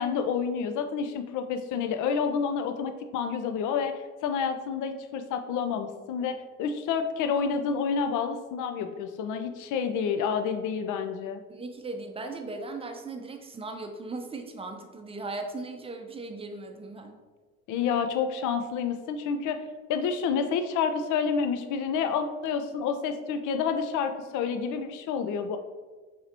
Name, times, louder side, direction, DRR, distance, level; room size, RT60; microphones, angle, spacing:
voice 1, 0.0-11.4 17.7-19.6 19.9-25.6, left 6 dB, 50° left, 8 dB, 0.6 m, -29 dB
voice 2, 11.5-17.2, right 3 dB, 15° right, 5 dB, 0.6 m, -38 dB
5.6 x 3.4 x 2.8 m, 1.4 s
figure-of-eight pair, 50°, 41 cm